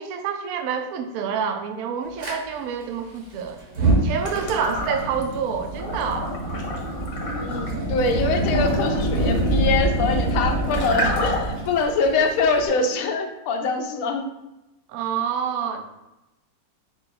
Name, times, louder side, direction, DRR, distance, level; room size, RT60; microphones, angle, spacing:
voice 1, 0.0-3.6 4.0-6.3 14.9-15.8, right 7 dB, 75° right, 6 dB, 0.8 m, -27 dB
Fire, 2.2-2.3 3.6-12.7, right 2 dB, 50° right, 1.1 m, -25 dB
sound 1, 4.2-5.3 5.7-11.7, left 1 dB, 55° left, 1.2 m, -31 dB
voice 2, 7.4-14.3, left 4 dB, 75° left, 4 dB, 0.8 m, -24 dB
4.5 x 2.2 x 4.0 m, 0.95 s
omnidirectional pair, 2.0 m